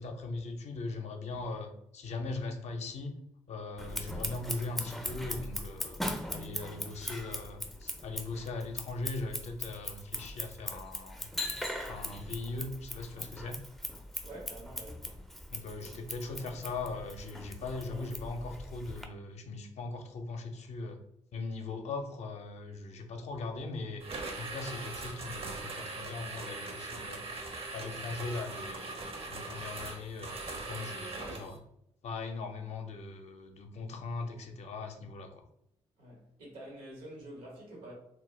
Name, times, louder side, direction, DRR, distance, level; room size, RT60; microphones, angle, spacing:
voice 1, 0.0-3.2 3.5-6.0 6.3-11.3 11.9-13.6 15.5-21.0 21.3-27.4 27.7-29.0 29.3-31.6 32.0-35.4, left 3 dB, 60° left, 0.5 m, -40 dB
Scissors, 3.8-19.1, left 1 dB, ahead, 0.4 m, -40 dB
voice 2, 14.2-15.1 36.0-37.9, right 1 dB, 85° right, 1.0 m, -47 dB
sound 1, 24.0-31.6, right 3 dB, 45° right, 0.6 m, -41 dB
2.2 x 2.0 x 3.0 m
hypercardioid pair, 50°, 13 cm